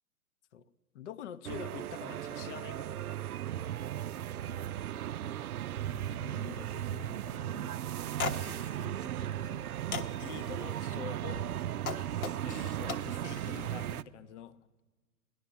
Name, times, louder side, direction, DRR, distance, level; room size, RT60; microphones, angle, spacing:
voice 1, 0.9-3.0 5.2-5.4 5.9-9.7 10.2-11.5 12.4-14.6, left 9 dB, 50° left, 15 dB, 0.7 m, -47 dB
sound 1, 1.4-14.0, right 11 dB, 70° right, 0.5 m, -36 dB
sound 2, 7.8-7.9 8.1-8.7 9.3-9.6 9.9-10.5 11.3-13.7, left 4 dB, 65° left, 1.2 m, -38 dB
17.0 x 11.5 x 7.0 m, 1.3 s
figure-of-eight pair, 115°, 46 cm